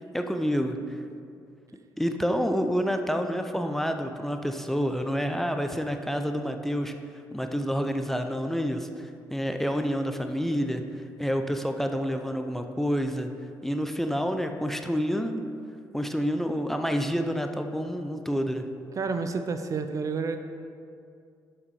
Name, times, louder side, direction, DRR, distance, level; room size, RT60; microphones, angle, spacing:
voice 1, 0.1-1.0 2.0-6.9 7.3-10.8 11.2-13.3 13.6-15.4 15.9-18.6, equal, 5° left, 6 dB, 0.5 m, -28 dB
voice 2, 19.0-20.4, right 4 dB, 45° right, 8 dB, 0.5 m, -29 dB
6.8 x 5.6 x 5.5 m, 2.4 s
cardioid pair, 80°, 8 cm